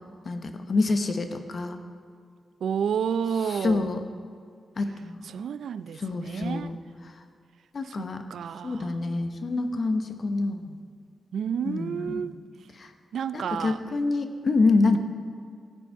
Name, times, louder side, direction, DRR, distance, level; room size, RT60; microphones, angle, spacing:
voice 1, 0.2-1.8 3.5-4.0 4.8-5.3 6.0-6.8 7.7-8.2 8.6-10.8 11.6-12.3 12.8-12.9 13.3-15.0, left 3 dB, 45° left, 7 dB, 0.9 m, -27 dB
voice 2, 2.6-3.9 5.2-6.7 7.8-8.9 11.3-12.4 13.1-13.8, right 7 dB, 80° right, 15 dB, 0.3 m, -30 dB
16.0 x 9.4 x 4.7 m, 2.1 s
wide cardioid pair, 150°, 0 cm